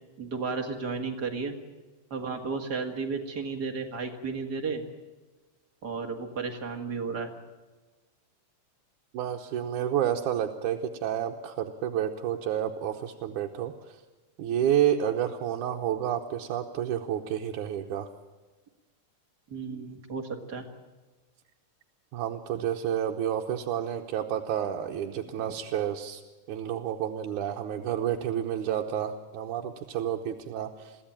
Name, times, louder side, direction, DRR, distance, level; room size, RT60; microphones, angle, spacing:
voice 1, 0.2-1.5 2.1-4.8 5.8-7.3 19.5-20.2 20.5-20.6 25.2-25.3, right 4 dB, 35° right, 3 dB, 2.2 m, -33 dB
voice 2, 9.1-13.7 14.4-18.1 22.1-26.2 26.5-31.0, right 10 dB, 75° right, 1 dB, 2.4 m, -30 dB
23.0 x 15.5 x 8.8 m, 1.2 s
omnidirectional pair, 3.6 m